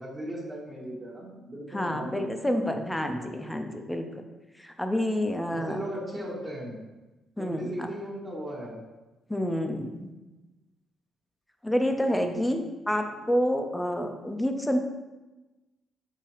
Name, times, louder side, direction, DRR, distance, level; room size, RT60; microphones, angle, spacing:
voice 1, 0.0-2.3 5.5-6.8 7.4-8.8 13.1-13.2, right 1 dB, 25° right, -5 dB, 1.1 m, -37 dB
voice 2, 1.7-4.0 4.6-5.8 7.4-7.9 9.3-10.1 11.6-14.8, equal, 5° left, 5 dB, 0.5 m, -28 dB
4.7 x 3.6 x 2.9 m, 1.1 s
cardioid pair, 90°, 0 cm